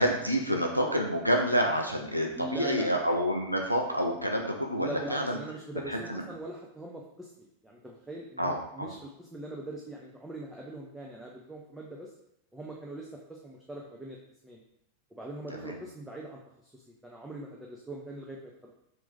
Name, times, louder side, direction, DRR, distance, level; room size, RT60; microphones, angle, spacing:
voice 1, 0.0-5.4 5.9-6.2 8.4-8.9 15.6-15.8, equal, 90° right, 2 dB, 0.4 m, -28 dB
voice 2, 2.3-2.9 4.8-12.1 12.5-14.2 14.4-14.6 15.1-18.7, right 2 dB, 5° right, -3 dB, 0.5 m, -41 dB
3.0 x 2.5 x 3.4 m, 0.77 s
figure-of-eight pair, 90°, 0 cm